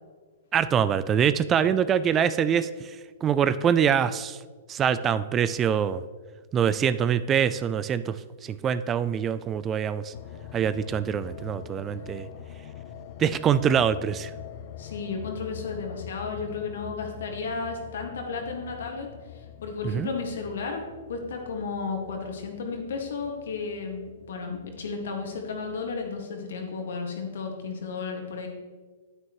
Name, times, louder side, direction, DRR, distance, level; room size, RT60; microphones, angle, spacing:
voice 1, 0.5-2.9 3.2-4.4 4.7-6.0 6.5-8.2 8.4-10.1 10.5-12.3 13.2-14.3 19.8-20.1, right 8 dB, 25° right, 14 dB, 0.3 m, -24 dB
sound 1, 10.1-26.2, left 10 dB, 50° left, 0.6 m, -44 dB
voice 2, 14.8-19.1 19.6-20.8 21.1-28.5, left 4 dB, 75° left, 2 dB, 1.8 m, -33 dB
9.3 x 9.0 x 3.1 m, 1.5 s
hypercardioid pair, 130°, 0 cm